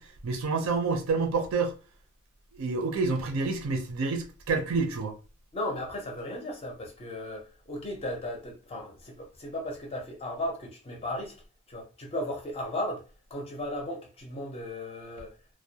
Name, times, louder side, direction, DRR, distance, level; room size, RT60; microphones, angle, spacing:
voice 1, 0.0-1.7 2.5-5.1, right 4 dB, 65° right, 0.5 m, -28 dB
voice 2, 5.5-11.4 11.7-15.4, left 1 dB, 30° left, 0.5 m, -36 dB
2.2 x 2.1 x 2.7 m
head